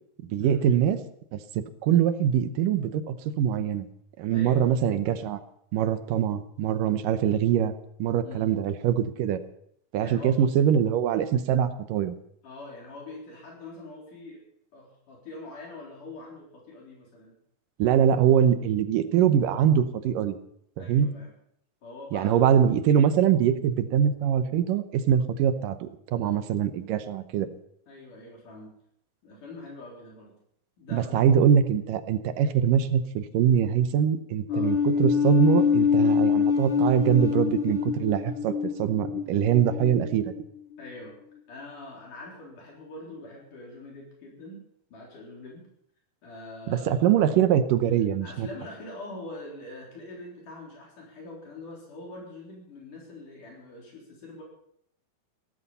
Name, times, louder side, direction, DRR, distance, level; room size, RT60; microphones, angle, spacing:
voice 1, 0.3-1.0 1.3-3.9 4.2-5.4 5.7-7.7 8.0-9.4 9.9-12.1 17.8-20.4 20.8-21.1 22.1-27.5 30.9-38.5 38.8-40.3 46.7-48.5, right 9 dB, 85° right, 11 dB, 2.6 m, -23 dB
voice 2, 10.0-10.5 12.4-14.4 14.7-17.3 20.8-21.3 21.8-22.5 23.8-23.9 26.1-26.4 27.9-28.7 29.2-30.3 30.8-31.3 34.5-34.7 40.8-41.2 41.5-44.6 44.9-45.6 46.2-47.1 48.2-54.4, left 2 dB, 70° left, -2 dB, 5.4 m, -43 dB
sound 1, 34.5-40.9, left 6 dB, 50° left, 2.2 m, -25 dB
16.0 x 13.5 x 5.6 m, 0.72 s
omnidirectional pair, 3.8 m